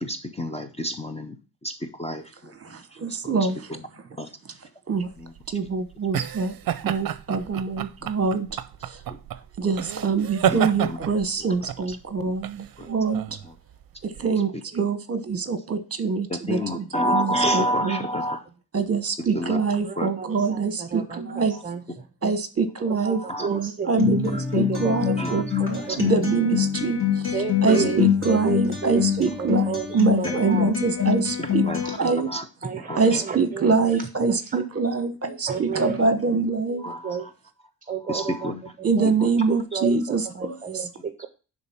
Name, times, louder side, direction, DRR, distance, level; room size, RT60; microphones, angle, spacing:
voice 1, 0.0-1.3 1.6-2.2 3.2-3.4 4.2-4.3 10.5-11.0 12.8-12.9 16.3-18.4 19.3-19.6 20.0-20.1 23.3-23.5 24.9-25.4 27.7-27.9 30.3-30.4 31.6-32.4 32.9-33.0 36.8-37.2 38.1-38.5, equal, 15° left, 0.6 m, -28 dB
voice 2, 2.5-4.0 4.9-5.1 5.5-6.5 6.8-9.0 9.6-13.3 14.0-18.1 18.7-21.6 22.2-27.4 27.6-31.7 32.0-32.3 33.0-36.9 38.8-40.9, right 4 dB, 40° right, 1.1 m, -25 dB
sound 1, 5.1-14.3, right 10 dB, 65° right, 0.5 m, -30 dB
voice 3, 19.8-22.1 23.0-23.9 24.5-25.2 25.8-26.0 27.3-28.0 28.3-29.0 29.4-30.7 32.0-32.1 32.6-33.7 34.2-34.6 35.5-36.0 37.0-37.3 37.9-38.5 39.0-39.1 39.7-41.3, right 6 dB, 20° right, 0.7 m, -31 dB
Acoustic guitar, 24.0-32.0, left 9 dB, 35° left, 2.3 m, -25 dB
10.5 x 3.7 x 5.6 m
wide cardioid pair, 180°, 38 cm